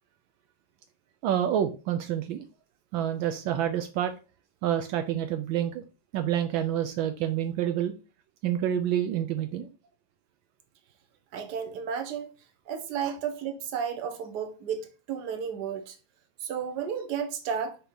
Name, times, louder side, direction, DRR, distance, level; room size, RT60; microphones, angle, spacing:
voice 1, 1.2-2.4 2.9-4.1 4.6-5.8 6.1-7.9 8.4-9.7 13.0-13.1, right 10 dB, 80° right, 1.4 m, -28 dB
voice 2, 11.3-12.3 12.7-16.0 16.4-17.8, right 7 dB, 60° right, 1.4 m, -33 dB
6.3 x 2.9 x 5.2 m
omnidirectional pair, 2.2 m